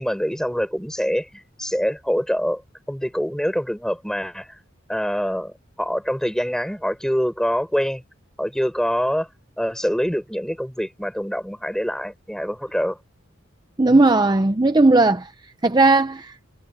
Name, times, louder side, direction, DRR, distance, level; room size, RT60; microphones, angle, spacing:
voice 1, 0.0-2.6 2.9-4.6 4.9-8.0 8.4-9.3 9.6-13.0 13.8-14.0, equal, 5° left, 6.0 m, -25 dB
voice 2, 13.8-15.3 15.6-16.4, right 2 dB, 20° right, 0.7 m, -16 dB
head